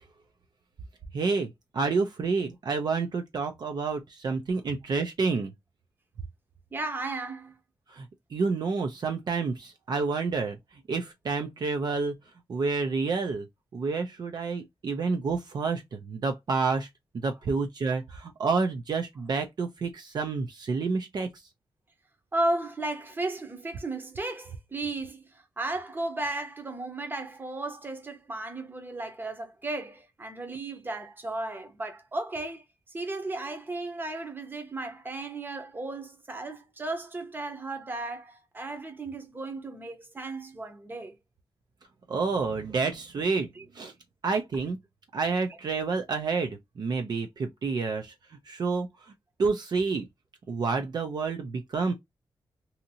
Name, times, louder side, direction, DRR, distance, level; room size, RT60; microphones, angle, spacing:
voice 1, 1.1-5.5 7.9-8.0 8.3-10.6 10.9-12.1 12.5-13.5 13.7-16.9 17.1-21.3 42.1-43.5 43.8-43.9 44.2-44.8 45.1-48.1 48.5-48.9 49.4-50.0 50.5-51.9, right 4 dB, 55° right, 0.5 m, -29 dB
voice 2, 6.7-7.5 22.3-25.2 25.6-32.6 32.9-41.2 43.6-43.7, right 2 dB, 25° right, 0.8 m, -34 dB
2.8 x 2.5 x 2.6 m
wide cardioid pair, 125°, 9 cm